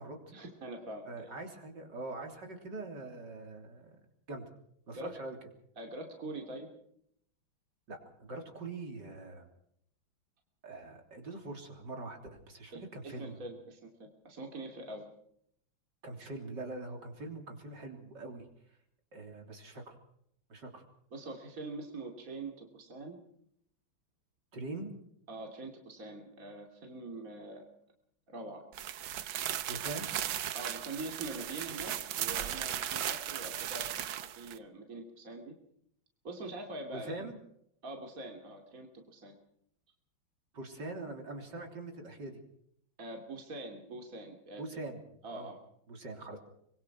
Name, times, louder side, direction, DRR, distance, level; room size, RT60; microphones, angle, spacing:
voice 1, 0.3-1.3 4.9-5.2 5.8-6.7 12.7-15.1 21.1-23.2 25.3-27.6 28.3-28.6 30.5-35.5 36.2-37.3 37.8-39.4 43.0-44.6 45.2-45.6, right 2 dB, 45° right, 2 dB, 3.2 m, -44 dB
voice 2, 1.1-4.0 4.3-4.4 4.9-5.4 7.9-9.5 10.6-13.4 16.0-18.4 19.1-20.0 20.5-20.9 24.5-24.9 29.7-30.1 36.9-37.4 40.5-42.4 44.6-45.0 45.3-45.5 45.9-46.4, right 2 dB, 60° right, 3 dB, 3.9 m, -43 dB
sound 1, 28.7-34.6, right 11 dB, 80° right, 1.7 m, -36 dB
24.5 x 22.5 x 4.8 m, 0.71 s
omnidirectional pair, 2.1 m